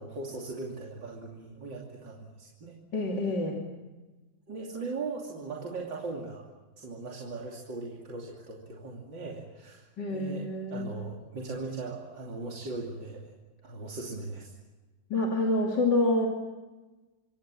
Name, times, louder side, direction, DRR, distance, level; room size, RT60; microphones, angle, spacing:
voice 1, 0.0-2.8 4.5-6.5 6.8-13.3 13.6-14.5, right 3 dB, 80° right, -2 dB, 3.6 m, -39 dB
voice 2, 2.9-3.6 10.0-10.9 15.1-16.3, left 2 dB, 70° left, 0 dB, 3.4 m, -27 dB
26.0 x 25.5 x 7.6 m, 1.2 s
omnidirectional pair, 2.0 m